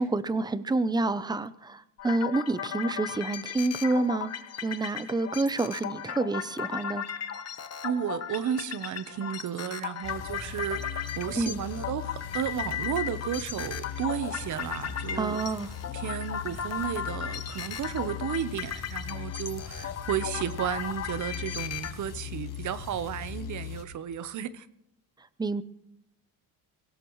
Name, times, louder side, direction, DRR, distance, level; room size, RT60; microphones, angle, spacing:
voice 1, 0.0-4.3 4.6-7.0 11.4-11.6 15.2-15.7 25.4-25.6, right 2 dB, 10° right, 16 dB, 0.5 m, -28 dB
sound 1, 2.0-21.9, left 8 dB, 40° left, 1.1 m, -36 dB
voice 2, 7.8-15.4 15.9-24.7, right 9 dB, 50° right, 14 dB, 0.9 m, -33 dB
sound 2, 10.0-23.8, left 8 dB, 55° left, 3.2 m, -39 dB
23.0 x 17.5 x 3.1 m, 0.84 s
cardioid pair, 120°, 38 cm